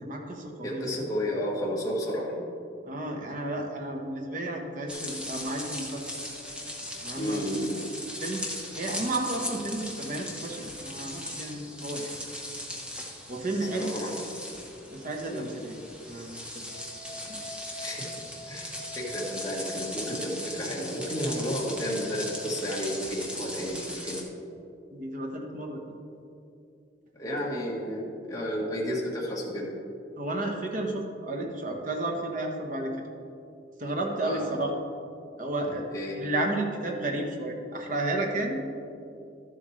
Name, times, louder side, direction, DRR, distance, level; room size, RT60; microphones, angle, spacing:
voice 1, 0.0-0.8 2.8-6.1 7.0-7.4 8.2-12.1 13.3-13.9 14.9-15.7 16.1-16.7 24.9-26.0 30.2-32.9 33.8-34.7 35.4-35.9 36.2-38.6, right 2 dB, 45° right, 1 dB, 1.1 m, -32 dB
voice 2, 0.6-2.5 7.1-7.9 13.6-14.3 15.2-15.4 17.8-18.1 18.5-24.3 27.1-29.7 34.2-34.4 35.9-36.2, equal, 20° left, -5 dB, 1.4 m, -32 dB
sound 1, 4.9-24.2, left 1 dB, 5° right, 1.0 m, -38 dB
sound 2, 5.9-9.1 9.4-9.5 16.6-24.6, left 2 dB, 85° right, 2.0 m, -46 dB
12.5 x 7.6 x 3.2 m, 2.6 s
head